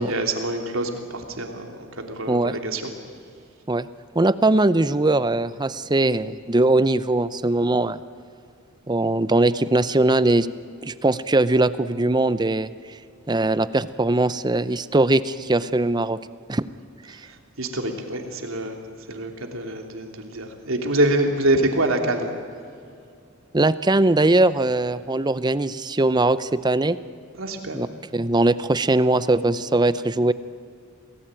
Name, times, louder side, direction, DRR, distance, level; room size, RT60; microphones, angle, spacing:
voice 1, 0.0-2.9 17.6-18.8 19.1-22.3 27.4-27.8, right 1 dB, 85° right, 3 dB, 3.2 m, -25 dB
voice 2, 4.1-8.0 8.9-10.5 10.8-12.7 13.3-16.2 16.5-16.6 17.1-17.2 23.5-27.0 27.7-27.9 28.1-30.3, right 2 dB, 20° right, 15 dB, 0.6 m, -20 dB
28.0 x 18.5 x 9.0 m, 2.4 s
head